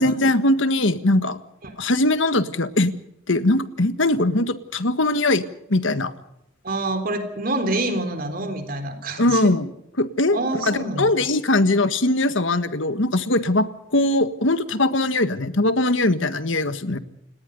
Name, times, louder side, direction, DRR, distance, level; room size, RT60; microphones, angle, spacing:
voice 1, 0.0-1.4 1.8-2.9 3.3-5.4 5.7-6.1 9.2-9.7 10.0-10.4 10.6-17.0, left 2 dB, 70° left, 11 dB, 1.6 m, -21 dB
voice 2, 6.6-9.5 10.3-11.2, right 2 dB, 45° right, 7 dB, 3.6 m, -27 dB
29.5 x 18.5 x 5.4 m, 0.80 s
head